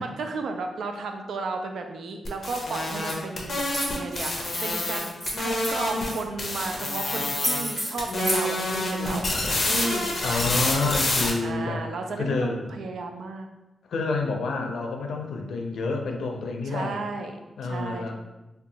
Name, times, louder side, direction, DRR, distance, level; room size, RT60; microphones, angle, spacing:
voice 1, 0.0-5.1 5.4-9.3 9.6-10.2 11.4-13.5 16.7-18.1, right 3 dB, 80° right, 4 dB, 0.3 m, -34 dB
sound 1, 2.3-6.1 6.4-7.7 8.0-11.3, left 2 dB, 40° left, 0.5 m, -27 dB
sound 2, 3.1-3.2 3.5-4.6 5.0-6.2 6.8-6.9 7.2-8.4, right 1 dB, 30° right, 1.1 m, -31 dB
voice 2, 10.2-11.8 12.2-12.7 13.9-17.0 17.6-18.1, left 3 dB, 85° left, 2 dB, 0.4 m, -28 dB
2.7 x 2.2 x 3.9 m, 1.0 s
wide cardioid pair, 160°, 0 cm